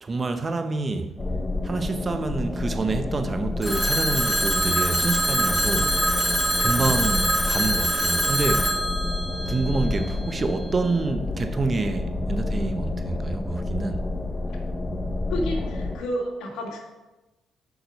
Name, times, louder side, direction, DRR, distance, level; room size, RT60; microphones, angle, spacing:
voice 1, 0.0-1.2 1.6-6.0 6.6-8.8 9.5-14.1, right 3 dB, 35° right, 0.7 m, -27 dB
sound 1, 1.2-16.0, left 2 dB, 20° left, 0.8 m, -29 dB
Telephone, 3.6-10.4, right 1 dB, 10° right, 1.4 m, -24 dB
voice 2, 15.3-16.8, equal, 90° left, 1.8 m, -30 dB
7.0 x 6.1 x 5.2 m
cardioid pair, 90°, 0 cm